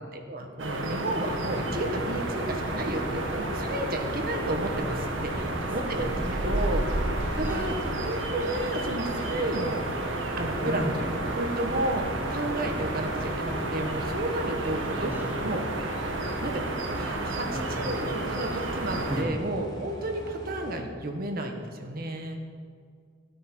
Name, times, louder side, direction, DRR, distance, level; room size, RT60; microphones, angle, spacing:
voice 1, 0.1-7.8 8.0-9.8 10.4-12.0 12.3-15.1 15.4-15.6 16.4-16.6 16.9-17.5 17.8-22.4, right 1 dB, 50° right, 4 dB, 1.4 m, -32 dB
sound 1, 0.6-19.2, right 2 dB, 90° right, 1.7 m, -31 dB
sound 2, 1.1-20.8, equal, 20° left, 1.9 m, -42 dB
voice 2, 5.3-6.3 7.4-8.0 10.6-11.0 15.1-15.6 17.4-18.0 19.1-19.4, equal, 10° right, 2 dB, 1.1 m, -36 dB
14.5 x 9.5 x 6.1 m, 2.1 s
head